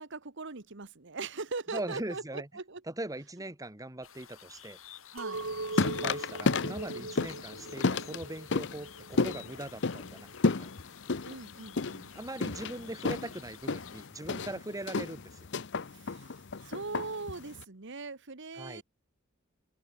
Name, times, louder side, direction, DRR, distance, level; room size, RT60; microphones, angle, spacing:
voice 1, 0.0-2.8 5.1-5.4 7.0-7.1 11.2-12.1 15.8-18.8, right 3 dB, 60° right, 1.5 m, -41 dB
voice 2, 1.7-2.5 2.9-4.8 5.7-10.3 10.6-10.7 12.2-15.5 18.5-18.8, right 1 dB, 15° right, 2.2 m, -40 dB
sound 1, 4.0-14.1, left 10 dB, 75° left, 7.6 m, -52 dB
Chink clink, 5.2-10.4, right 3 dB, 90° right, 2.8 m, -41 dB
sound 2, 5.3-17.6, left 3 dB, 60° left, 0.8 m, -33 dB
open air
head